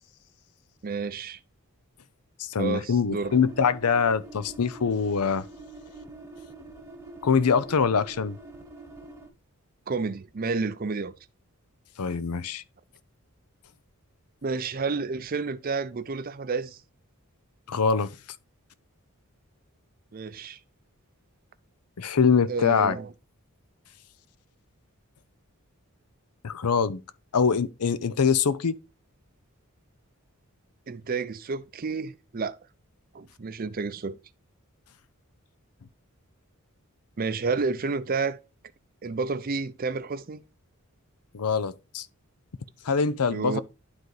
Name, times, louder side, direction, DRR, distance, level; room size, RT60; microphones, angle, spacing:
voice 1, 0.8-1.4 2.6-3.4 9.9-11.2 14.4-16.8 20.1-20.6 22.5-23.1 30.9-32.6 33.1-34.2 37.2-38.4 39.0-40.4 43.3-43.6, right 4 dB, 40° right, 0.5 m, -30 dB
voice 2, 2.4-5.4 7.2-8.4 12.0-12.6 17.7-18.2 22.0-23.0 26.4-27.0 27.3-28.8 41.3-42.1 42.8-43.6, left 6 dB, 90° left, 0.6 m, -24 dB
sound 1, 3.1-9.3, right 2 dB, 10° right, 1.1 m, -45 dB
11.5 x 4.0 x 3.1 m
head